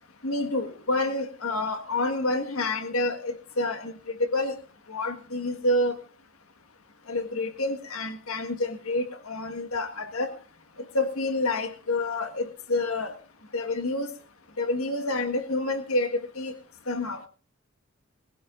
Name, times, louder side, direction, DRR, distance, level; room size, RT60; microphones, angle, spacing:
voice 1, 0.2-3.9 4.3-4.6 4.9-5.9 7.1-10.3 10.9-13.2 13.5-14.1 14.6-16.5 16.9-17.2, left 2 dB, 75° left, 1.6 m, -28 dB
20.0 x 17.0 x 2.6 m
head